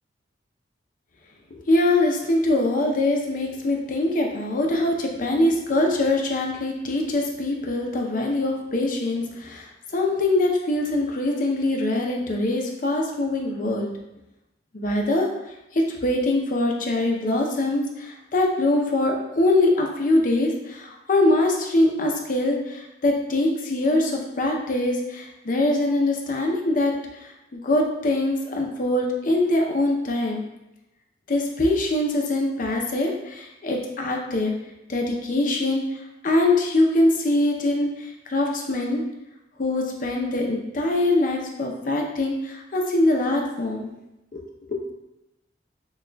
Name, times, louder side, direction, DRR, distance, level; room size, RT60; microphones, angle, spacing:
voice 1, 1.5-13.9 14.7-15.3 15.7-30.4 31.3-34.5 34.9-39.0 39.6-43.9 44.3-44.8, left 2 dB, 50° left, 1 dB, 0.6 m, -23 dB
6.2 x 2.3 x 2.2 m, 0.93 s
head